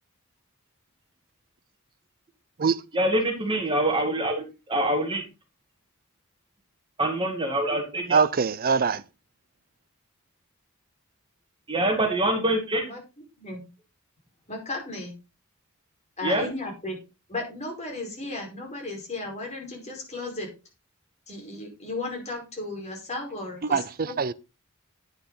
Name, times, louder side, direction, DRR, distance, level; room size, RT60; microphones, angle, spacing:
voice 1, 2.9-5.2 7.0-8.2 11.7-12.8 16.2-16.5, right 1 dB, 25° right, 2.2 m, -25 dB
voice 2, 8.1-9.0 23.6-24.3, right 5 dB, 45° right, 0.6 m, -23 dB
voice 3, 14.5-15.1 16.2-17.0 17.3-20.5 21.3-24.1, left 2 dB, 35° left, 4.9 m, -35 dB
9.7 x 8.9 x 4.1 m
head